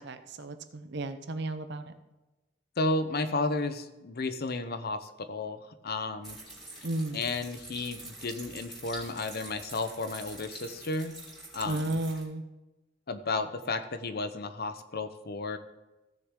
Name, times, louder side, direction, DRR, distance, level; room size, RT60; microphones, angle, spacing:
voice 1, 0.0-1.9 6.8-7.2 11.7-12.4, right 2 dB, 60° right, 10 dB, 0.8 m, -33 dB
voice 2, 2.8-5.6 5.8-6.4 7.1-11.1 11.5-12.0 13.1-15.6, left 3 dB, 50° left, 10 dB, 0.8 m, -33 dB
sound 1, 6.2-12.2, right 2 dB, ahead, 3.7 m, -46 dB
15.5 x 6.7 x 3.7 m, 1.0 s
head